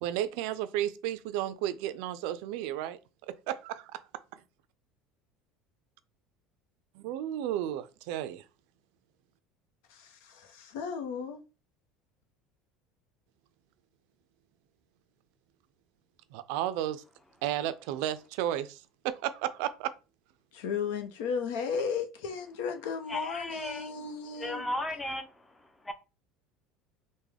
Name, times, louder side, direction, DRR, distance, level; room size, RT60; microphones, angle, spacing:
voice 1, 0.0-3.0 3.3-4.0 4.3-4.4 6.9-8.4 16.3-17.0 17.4-19.9, right 12 dB, 75° right, 0.3 m, -33 dB
voice 2, 9.9-11.4 20.5-24.7, left 6 dB, 90° left, 0.6 m, -35 dB
voice 3, 23.1-23.9 24.4-25.5 25.8-25.9, left 1 dB, 10° left, 0.5 m, -35 dB
3.5 x 2.1 x 3.3 m
supercardioid pair, 125°, 0 cm